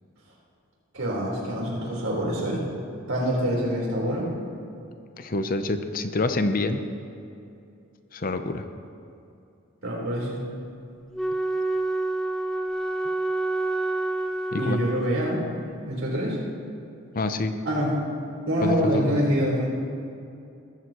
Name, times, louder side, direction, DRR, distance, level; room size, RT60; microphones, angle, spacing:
voice 1, 0.9-2.6 3.1-4.3 9.8-10.4 14.5-15.4 15.9-16.4 17.6-17.9 18.5-19.7, equal, 80° right, -4 dB, 4.2 m, -25 dB
voice 2, 5.2-6.8 8.1-8.7 14.5-14.8 17.1-17.5 18.6-19.1, left 2 dB, 40° left, 8 dB, 0.7 m, -27 dB
Wind instrument woodwind instrument, 11.1-15.6, right 2 dB, 5° left, 0.5 m, -28 dB
21.0 x 14.0 x 3.1 m, 2.6 s
head